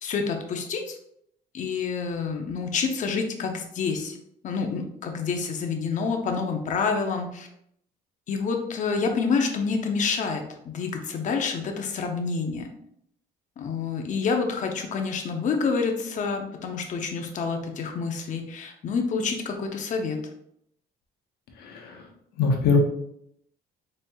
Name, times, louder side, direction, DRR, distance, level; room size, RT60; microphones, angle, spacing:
voice 1, 0.0-1.0 1.5-4.2 4.4-7.5 8.3-12.7 13.6-20.2, left 5 dB, 50° left, 4 dB, 0.7 m, -28 dB
voice 2, 21.6-21.9 22.4-22.8, left 5 dB, 75° left, 2 dB, 0.9 m, -22 dB
4.3 x 3.2 x 2.3 m, 0.72 s
cardioid pair, 110°, 17 cm